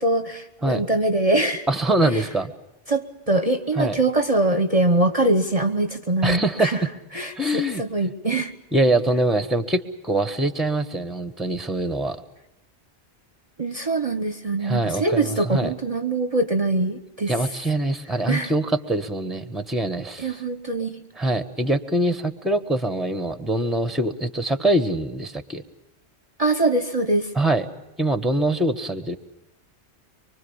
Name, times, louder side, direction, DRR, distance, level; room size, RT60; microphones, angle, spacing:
voice 1, 0.0-1.7 2.0-2.3 2.9-6.8 7.1-8.5 13.6-17.3 18.3-18.5 20.2-21.0 26.4-27.3, right 2 dB, 35° right, 8 dB, 1.1 m, -23 dB
voice 2, 1.7-2.5 3.7-4.0 6.2-6.9 7.4-7.8 8.7-12.2 14.6-15.7 17.3-20.4 21.2-25.6 27.3-27.6 28.0-29.2, right 1 dB, ahead, 11 dB, 1.2 m, -23 dB
24.5 x 24.5 x 7.1 m, 0.91 s
omnidirectional pair, 1.1 m